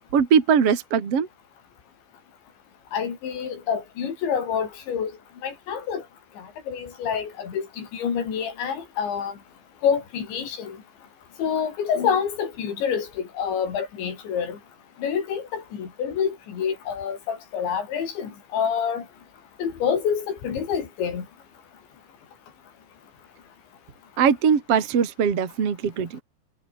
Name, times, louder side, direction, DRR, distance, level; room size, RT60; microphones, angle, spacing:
voice 1, 0.1-1.3 24.2-26.2, right 7 dB, 40° right, 3.1 m, -21 dB
voice 2, 2.9-5.1 5.4-6.0 6.4-9.3 9.8-10.8 11.4-14.6 15.0-19.0 19.6-21.3, left 7 dB, 80° left, 6.8 m, -27 dB
omnidirectional pair, 5.2 m